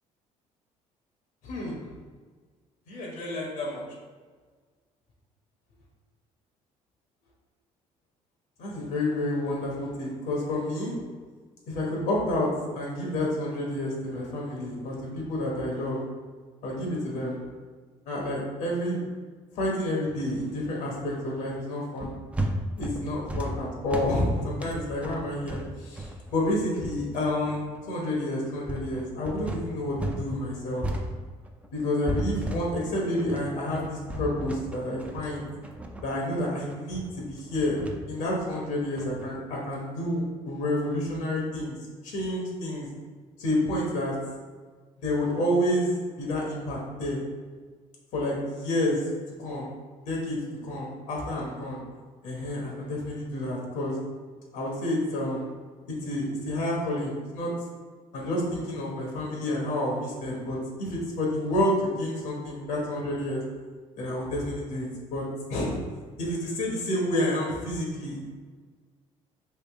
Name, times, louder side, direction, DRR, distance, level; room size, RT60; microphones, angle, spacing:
voice 1, 1.4-1.8 2.9-3.8 8.6-10.9 11.7-16.0 16.6-17.4 18.1-19.0 19.5-22.1 22.8-30.9 31.7-35.5 36.0-37.8 38.1-41.8 42.0-42.9 43.4-44.1 45.0-45.9 46.2-47.2 48.1-49.0 49.4-49.7 50.1-51.8 52.2-54.0 54.5-55.5 55.9-57.5 58.1-63.4 64.0-65.8 66.2-68.2, left 1 dB, 85° left, -2 dB, 1.1 m, -29 dB
sound 1, 22.0-30.2 30.5-39.3, right 1 dB, 10° right, 0.4 m, -35 dB
3.5 x 2.6 x 3.5 m, 1.5 s
cardioid pair, 100°, 13 cm